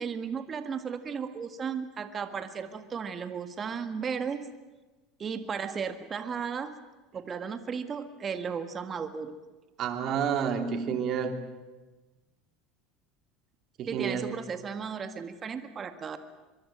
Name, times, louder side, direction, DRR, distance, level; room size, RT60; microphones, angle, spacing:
voice 1, 0.0-4.5 5.2-6.7 7.1-9.4 13.9-16.2, right 6 dB, 35° right, 9 dB, 1.9 m, -35 dB
voice 2, 9.8-11.3 13.8-14.3, right 7 dB, 50° right, 6 dB, 3.3 m, -29 dB
23.5 x 23.5 x 7.7 m, 1.2 s
hypercardioid pair, 85°, 0 cm